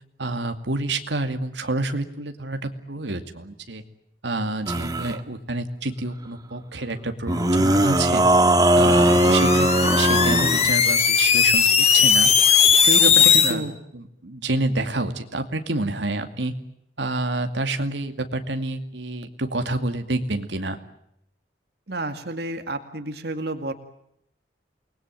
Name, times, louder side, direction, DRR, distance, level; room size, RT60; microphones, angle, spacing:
voice 1, 0.2-3.8 4.2-8.3 8.7-12.3 12.8-16.5 17.0-20.8, right 2 dB, 80° right, 7 dB, 2.4 m, -28 dB
sound 1, 4.7-5.2 7.3-10.7, right 1 dB, 20° right, 1.6 m, -19 dB
sound 2, 8.7-13.5, left 7 dB, 35° left, 2.2 m, -18 dB
voice 2, 13.2-13.6 21.9-23.7, right 2 dB, 60° right, 8 dB, 2.2 m, -31 dB
29.0 x 21.0 x 9.2 m, 0.77 s
head